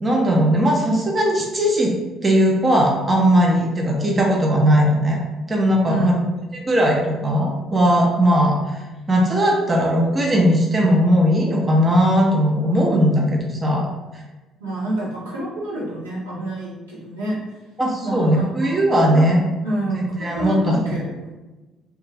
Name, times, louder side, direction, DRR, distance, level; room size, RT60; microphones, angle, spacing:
voice 1, 0.0-1.9 2.2-5.2 5.5-6.1 6.5-8.6 9.1-13.9 17.8-19.4 20.2-21.0, equal, 25° right, -1 dB, 0.5 m, -18 dB
voice 2, 5.9-6.2 14.6-17.4 18.0-18.8 19.1-19.3 19.6-21.3, right 1 dB, 80° right, -8 dB, 0.8 m, -27 dB
2.4 x 2.2 x 3.1 m, 1.2 s
figure-of-eight pair, 50°, 0 cm